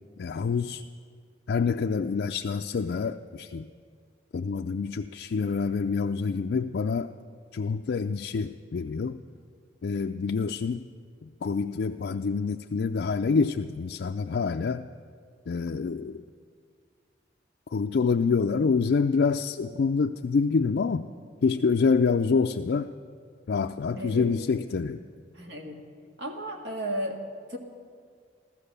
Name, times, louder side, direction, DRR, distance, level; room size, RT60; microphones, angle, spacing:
voice 1, 0.2-0.8 1.5-3.7 4.3-7.1 7.5-9.2 9.8-10.8 11.2-14.9 15.5-16.2 17.7-21.1 21.4-22.9 23.5-25.0, left 5 dB, 70° left, 4 dB, 0.4 m, -26 dB
voice 2, 24.0-24.3 25.3-25.9 26.2-27.2 27.5-27.6, equal, 70° right, 2 dB, 1.8 m, -34 dB
15.0 x 13.0 x 6.8 m, 2.1 s
head